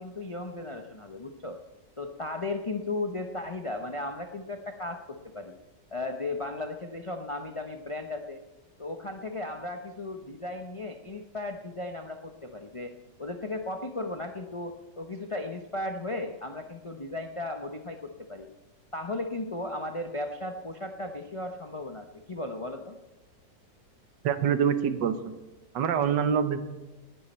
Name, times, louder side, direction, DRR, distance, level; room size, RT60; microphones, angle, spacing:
voice 1, 0.0-1.6 2.0-5.6 5.9-8.4 8.8-12.9 13.2-18.5 18.9-23.0, left 2 dB, 40° left, 5 dB, 0.4 m, -36 dB
voice 2, 24.2-25.2 25.7-26.6, right 8 dB, 75° right, 10 dB, 1.6 m, -25 dB
19.0 x 11.0 x 4.4 m, 1.1 s
omnidirectional pair, 2.0 m